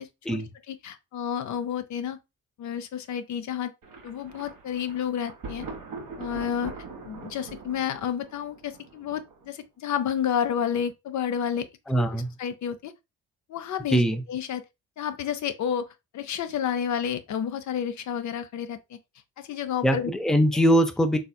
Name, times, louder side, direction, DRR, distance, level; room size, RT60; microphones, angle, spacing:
voice 1, 0.0-0.4 0.7-2.2 2.6-3.7 4.0-5.7 6.2-6.7 7.1-11.7 11.9-12.0 12.4-12.9 13.5-14.0 14.3-14.6 15.0-15.9 16.1-19.0 19.4-20.1, left 8 dB, 60° left, 0.5 m, -30 dB
Thunder, 3.8-9.6, right 4 dB, 70° right, 1.0 m, -42 dB
voice 2, 11.9-12.3 13.9-14.2 19.8-21.2, equal, ahead, 0.5 m, -22 dB
3.3 x 2.7 x 2.2 m
supercardioid pair, 60°, 33 cm